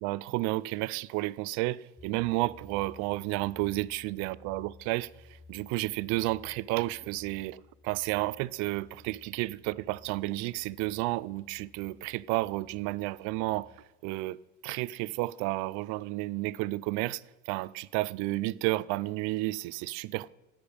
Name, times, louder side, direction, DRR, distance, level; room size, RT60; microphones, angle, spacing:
voice 1, 0.0-13.7 14.0-14.4 14.6-20.3, right 19 dB, 60° right, 0.4 m, -32 dB
sound 1, 2.0-13.8, left 3 dB, ahead, 0.3 m, -56 dB
10.0 x 9.0 x 5.0 m
supercardioid pair, 120°, 34 cm